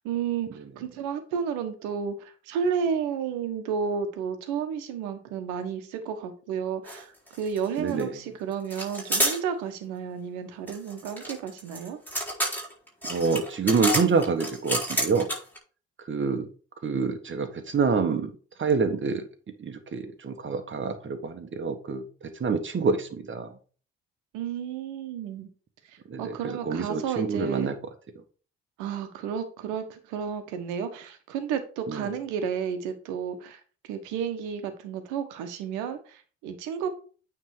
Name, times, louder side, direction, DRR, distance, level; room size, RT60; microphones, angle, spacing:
voice 1, 0.0-0.5 0.8-12.0 24.3-25.5 26.2-27.7 28.8-33.6 33.9-36.9, right 7 dB, 75° right, 1.3 m, -32 dB
sound 1, 6.9-7.0 7.3-8.0 8.7-9.4 10.7-15.6, equal, 5° left, 4.2 m, -29 dB
voice 2, 7.8-8.2 13.0-15.3 16.1-16.5 16.8-18.3 18.6-19.3 19.6-22.0 22.4-23.5 26.1-27.8 31.9-32.1, right 5 dB, 40° right, 1.5 m, -27 dB
9.0 x 3.7 x 4.8 m
hypercardioid pair, 50°, 30 cm